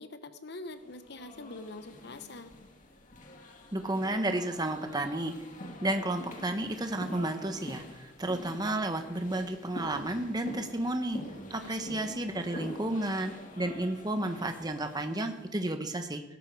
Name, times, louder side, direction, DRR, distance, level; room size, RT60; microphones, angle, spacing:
voice 1, 0.0-2.5 11.6-11.8, left 2 dB, 65° left, 10 dB, 1.0 m, -44 dB
sound 1, 0.8-15.5, left 1 dB, 45° left, 1.8 m, -46 dB
voice 2, 3.7-5.3 5.8-11.2 11.5-16.2, right 1 dB, 20° right, 6 dB, 1.2 m, -32 dB
17.0 x 12.5 x 4.8 m, 0.98 s
head